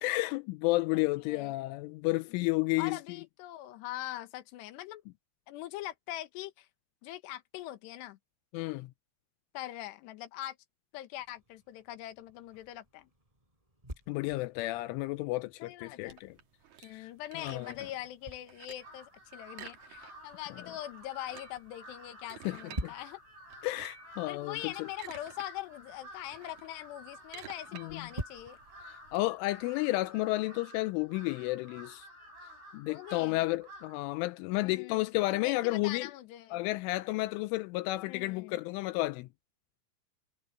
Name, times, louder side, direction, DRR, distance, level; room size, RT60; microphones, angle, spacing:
voice 1, 0.0-3.2 8.5-8.9 14.1-16.4 16.9-17.1 17.4-17.8 22.5-22.9 23.6-24.9 27.7-28.1 29.1-32.1 32.7-36.1 36.5-39.3, left 20 dB, 85° left, 3.1 m, -32 dB
voice 2, 0.8-1.5 2.8-5.0 5.5-6.7 7.0-8.2 9.5-10.6 10.9-13.1 15.6-16.2 16.8-23.2 24.2-28.6 32.9-33.4 34.6-36.6 38.0-38.6, left 14 dB, 70° left, 3.3 m, -42 dB
sound 1, 11.2-30.1, right 1 dB, 5° right, 5.2 m, -50 dB
sound 2, 16.1-18.0 18.3-19.0 19.5-20.4 20.7-20.8 21.1-22.9 23.5-24.1 24.7-25.5 25.8-29.2, right 9 dB, 55° right, 2.4 m, -51 dB
Crow, 18.8-34.1, equal, 75° right, 10.0 m, -52 dB
omnidirectional pair, 5.6 m